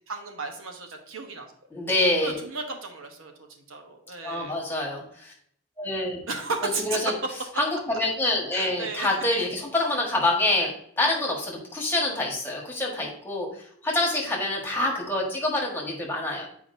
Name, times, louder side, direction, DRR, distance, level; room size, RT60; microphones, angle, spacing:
voice 1, 0.1-1.5 2.2-4.6 6.3-7.1 8.5-9.1, right 3 dB, 70° right, 3 dB, 1.0 m, -34 dB
voice 2, 1.7-2.4 4.2-5.3 5.8-6.2 6.6-7.1 7.6-16.5, left 2 dB, 10° left, -2 dB, 1.4 m, -26 dB
8.4 x 4.7 x 2.6 m, 0.64 s
head